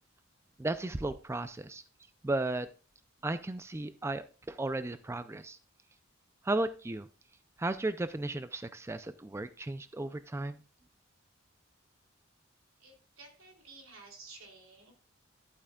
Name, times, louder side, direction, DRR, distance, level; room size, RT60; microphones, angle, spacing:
voice 1, 0.6-1.8 2.2-2.7 3.2-5.6 6.4-7.1 7.6-10.6, right 2 dB, 15° right, 12 dB, 0.3 m, -34 dB
voice 2, 12.8-14.9, right 3 dB, 90° right, 1 dB, 2.8 m, -53 dB
11.5 x 8.5 x 2.3 m, 0.35 s
head